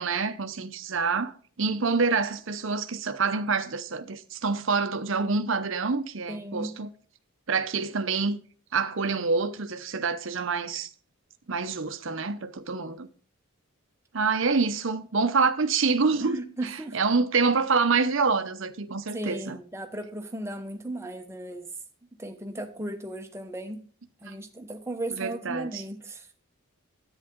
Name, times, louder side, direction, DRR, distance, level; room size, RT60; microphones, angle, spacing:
voice 1, 0.0-6.9 7.5-8.4 8.7-10.9 11.5-13.1 14.1-19.6 24.3-24.4 25.1-25.8, right 4 dB, 60° right, 0.7 m, -27 dB
voice 2, 6.3-6.8 16.2-17.0 19.1-21.7 22.2-23.8 24.2-26.3, right 1 dB, 10° right, 0.9 m, -36 dB
10.5 x 8.9 x 3.7 m
head